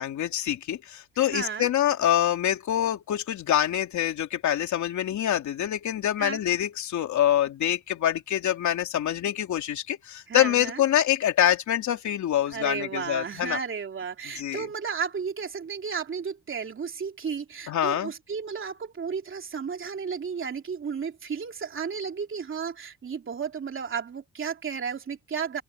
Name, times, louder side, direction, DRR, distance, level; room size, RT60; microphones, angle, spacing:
voice 1, 0.0-13.6 14.4-14.7 17.7-18.1, left 11 dB, 70° left, 3.2 m, -25 dB
voice 2, 1.2-1.7 6.2-6.4 10.3-10.8 12.5-25.6, right 6 dB, 40° right, 3.1 m, -33 dB
cardioid pair, 90°, 30 cm